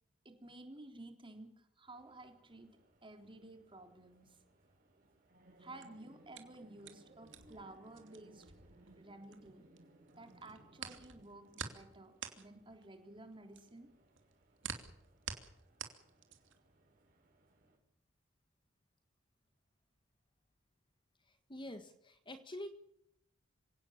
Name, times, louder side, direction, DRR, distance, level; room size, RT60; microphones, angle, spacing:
voice 1, 0.3-2.7 3.0-4.4 5.6-8.5 9.0-9.6 10.2-13.9, right 2 dB, 25° right, 6 dB, 3.7 m, -53 dB
sound 1, 1.9-17.8, right 1 dB, 45° right, 6.6 m, -65 dB
sound 2, 5.6-9.8 10.1-16.7, right 7 dB, 65° right, 2.8 m, -48 dB
voice 2, 21.3-22.7, left 1 dB, 25° left, 9 dB, 1.5 m, -47 dB
26.0 x 17.5 x 7.4 m, 0.81 s
head